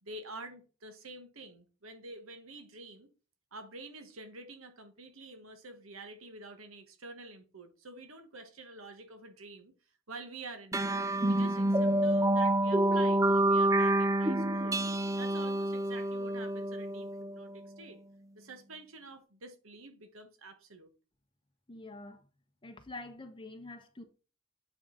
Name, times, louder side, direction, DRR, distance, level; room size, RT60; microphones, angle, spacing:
voice 1, 0.0-3.1 3.5-9.7 10.1-10.9 11.2-14.8 15.2-18.0 18.3-20.9, right 2 dB, 90° right, 1.4 m, -48 dB
sound 1, 10.7-17.6, right 1 dB, 15° right, 0.4 m, -28 dB
voice 2, 21.7-22.2 22.6-24.0, left 2 dB, 25° left, 1.4 m, -46 dB
9.4 x 5.1 x 3.9 m
head